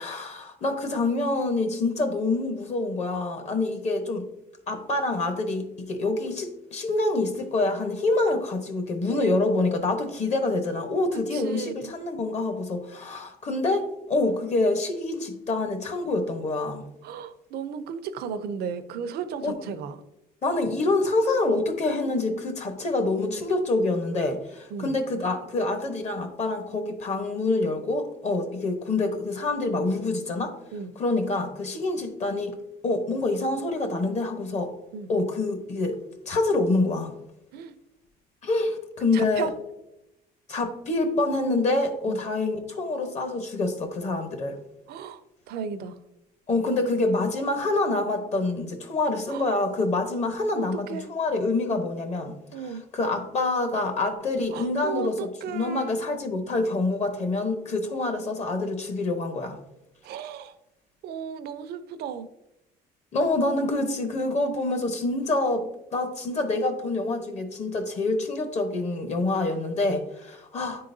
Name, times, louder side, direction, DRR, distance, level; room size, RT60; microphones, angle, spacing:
voice 1, 0.0-4.3 4.7-16.9 19.4-19.5 20.4-30.5 31.0-32.6 32.8-34.7 35.1-36.0 36.3-37.1 38.4-39.5 40.5-44.6 46.5-52.4 52.6-59.6 63.1-70.8, left 2 dB, 40° left, 7 dB, 1.0 m, -26 dB
voice 2, 11.3-11.9 17.0-20.0 24.7-25.0 30.7-30.9 34.9-35.1 37.5-37.7 39.1-39.5 42.1-42.2 44.9-45.2 45.5-46.0 49.3-49.4 50.5-51.1 52.5-52.8 54.5-55.9 60.0-60.5 61.0-62.3, right 6 dB, 70° right, 11 dB, 0.6 m, -35 dB
9.7 x 3.8 x 2.6 m, 0.88 s
cardioid pair, 110°, 17 cm